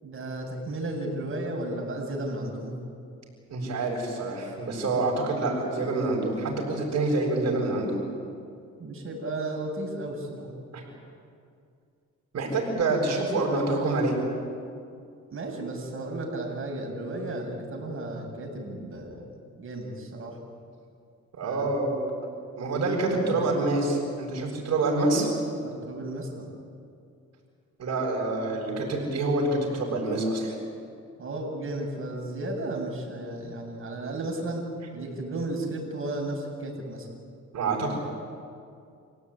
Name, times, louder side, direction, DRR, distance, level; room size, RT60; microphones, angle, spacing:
voice 1, 0.0-2.7 8.8-10.5 15.3-19.3 19.6-20.4 21.4-21.6 23.1-23.4 24.5-24.7 25.6-26.5 31.2-34.6 34.9-37.1, right 2 dB, 45° right, 0 dB, 7.6 m, -34 dB
voice 2, 3.5-8.0 10.7-10.8 12.3-14.2 21.4-22.0 22.6-25.3 27.8-30.5 37.5-37.9, right 2 dB, 60° right, -3 dB, 7.6 m, -26 dB
28.5 x 17.5 x 10.0 m, 2.4 s
cardioid pair, 90°, 30 cm